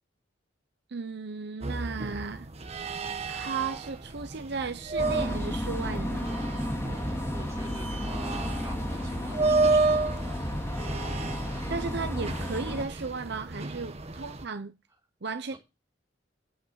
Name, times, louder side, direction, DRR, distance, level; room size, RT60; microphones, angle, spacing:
voice 1, 0.9-2.5 3.3-6.3 11.7-14.7 15.2-15.6, right 4 dB, 65° right, 0.8 m, -35 dB
sound 1, 1.6-14.4, right 3 dB, 35° right, 1.3 m, -32 dB
sound 2, 5.0-12.9, left 1 dB, 15° left, 2.7 m, -33 dB
voice 2, 7.3-10.0 14.2-14.3 15.5-15.6, right 2 dB, 15° right, 5.2 m, -45 dB
8.7 x 8.0 x 6.4 m
head